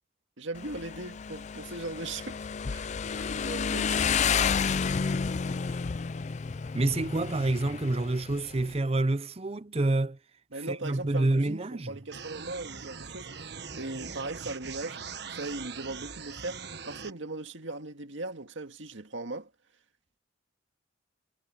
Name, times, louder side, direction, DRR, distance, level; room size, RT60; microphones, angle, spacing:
voice 1, 0.4-2.9 3.4-4.1 10.5-15.0 15.3-19.5, right 2 dB, 75° right, 2.0 m, -39 dB
Motorcycle, 0.6-8.8, left 6 dB, 35° left, 0.4 m, -31 dB
Marimba xylophone, 3.0-5.8, left 3 dB, 70° left, 0.8 m, -43 dB
voice 2, 6.7-10.2 10.7-12.0, right 2 dB, 30° right, 0.6 m, -28 dB
sound 1, 12.1-17.1, right 6 dB, 55° right, 1.4 m, -41 dB
head